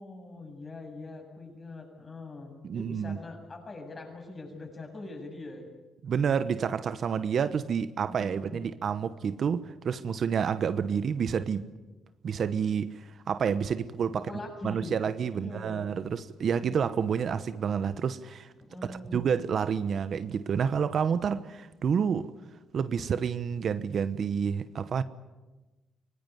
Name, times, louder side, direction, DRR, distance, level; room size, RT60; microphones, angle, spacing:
voice 1, 0.0-5.7 8.0-8.7 14.2-15.0 15.3-15.8 18.6-19.2, left 2 dB, 30° left, 7.4 m, -43 dB
voice 2, 2.6-3.2 6.0-11.6 12.2-14.2 14.6-18.5 18.9-22.3 22.7-25.0, right 7 dB, 55° right, 1.0 m, -29 dB
24.0 x 19.5 x 9.6 m
cardioid pair, 90°, 0 cm